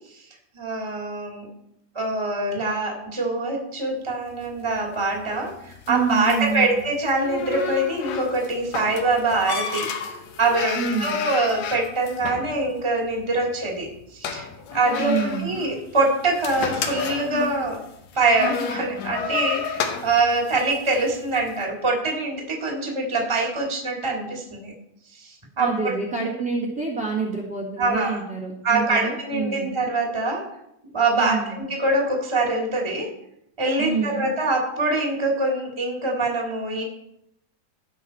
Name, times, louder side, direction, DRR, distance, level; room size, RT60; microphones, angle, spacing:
voice 1, 0.5-1.5 1.9-9.9 10.4-15.1 15.4-17.8 18.1-24.7 25.1-25.9 27.8-28.2 28.6-30.4 30.9-33.1 33.6-36.8, right 2 dB, 10° right, 0 dB, 1.8 m, -24 dB
sound 1, 4.3-21.5, left 6 dB, 65° left, 1.9 m, -33 dB
voice 2, 5.9-6.8 10.7-11.2 15.0-15.6 25.6-29.7 31.2-31.6 33.8-34.3, right 4 dB, 35° right, -5 dB, 1.7 m, -27 dB
17.0 x 6.2 x 4.3 m, 0.78 s
omnidirectional pair, 4.2 m